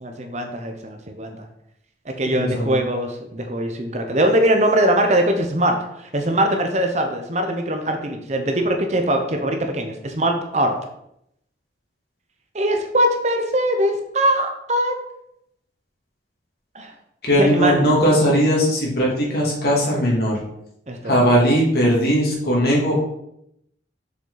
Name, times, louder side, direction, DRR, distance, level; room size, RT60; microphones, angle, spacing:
voice 1, 0.0-1.5 2.2-10.7 12.5-14.9 16.7-16.9 17.4-18.0 20.9-21.1, right 1 dB, 40° right, 4 dB, 0.8 m, -21 dB
voice 2, 2.2-2.8 17.3-20.3 21.0-22.9, equal, 55° left, -4 dB, 2.6 m, -18 dB
6.7 x 5.7 x 4.0 m, 0.78 s
head